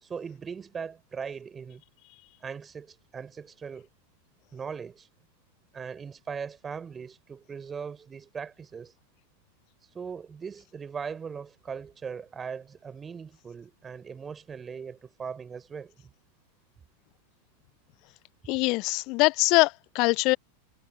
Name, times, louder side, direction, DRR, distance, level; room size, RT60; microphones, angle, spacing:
voice 1, 0.0-1.8 2.4-3.9 4.5-5.1 5.7-8.9 9.9-15.9, right 6 dB, 20° right, 4.4 m, -39 dB
voice 2, 18.5-20.4, left 25 dB, 40° left, 0.6 m, -23 dB
figure-of-eight pair, 90°, 0 cm